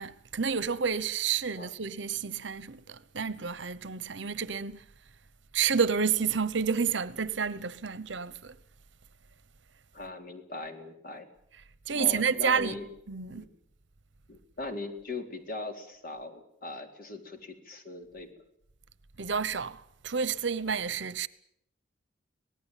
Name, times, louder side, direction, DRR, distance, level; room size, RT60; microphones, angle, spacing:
voice 1, 0.0-4.8 5.5-8.5 11.9-12.8 13.1-13.4 19.2-21.3, right 6 dB, 70° right, 1.0 m, -30 dB
voice 2, 9.9-11.3 11.9-12.9 13.3-13.5 14.3-18.4, left 2 dB, 50° left, 3.6 m, -40 dB
25.5 x 18.0 x 9.2 m
head